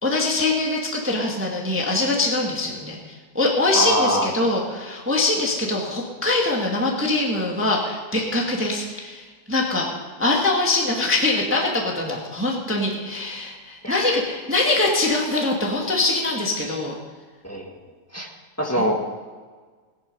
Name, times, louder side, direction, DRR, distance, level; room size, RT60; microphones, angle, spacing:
voice 1, 0.0-9.9 10.2-16.9 18.7-18.8, left 2 dB, 5° right, -1 dB, 1.5 m, -23 dB
voice 2, 3.7-4.3 13.8-14.2 17.4-17.7 18.1-18.3 18.6-19.0, equal, 10° left, -1 dB, 0.8 m, -23 dB
18.0 x 10.5 x 5.4 m, 1.5 s
omnidirectional pair, 3.4 m